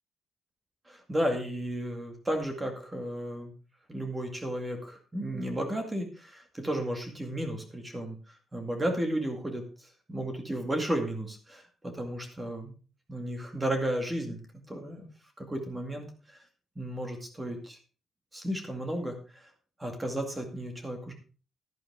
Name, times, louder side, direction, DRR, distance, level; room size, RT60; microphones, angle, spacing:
voice 1, 0.9-3.5 3.9-8.2 8.5-9.6 10.1-12.7 13.1-14.4 14.7-15.1 15.4-16.1 16.8-17.8 18.3-19.5 19.8-21.1, right 1 dB, 15° right, 4 dB, 2.2 m, -33 dB
11.5 x 10.5 x 3.7 m, 0.36 s
cardioid pair, 150°, 0 cm